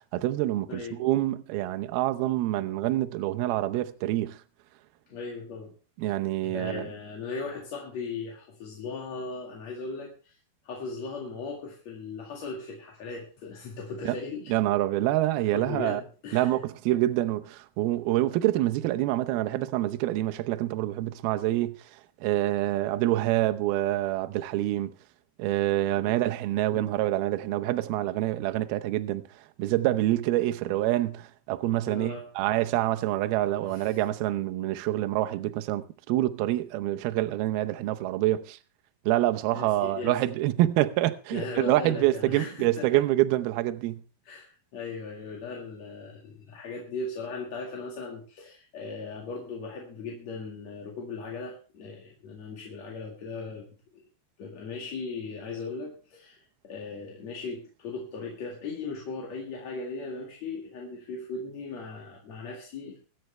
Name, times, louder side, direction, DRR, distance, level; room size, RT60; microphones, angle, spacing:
voice 1, 0.0-4.4 6.0-6.9 14.0-14.2 14.5-16.0 16.3-21.8 22.2-24.9 25.4-29.2 29.6-38.6 39.1-44.0, right 15 dB, 75° right, 2.5 m, -26 dB
voice 2, 0.7-1.0 5.1-5.7 6.4-10.4 10.6-14.5 15.5-16.6 26.0-26.3 26.7-27.0 31.9-32.3 33.6-34.0 39.5-40.3 41.3-43.1 44.2-54.0 54.4-63.0, left 4 dB, 50° left, 2.7 m, -38 dB
24.0 x 9.1 x 3.3 m
omnidirectional pair, 5.0 m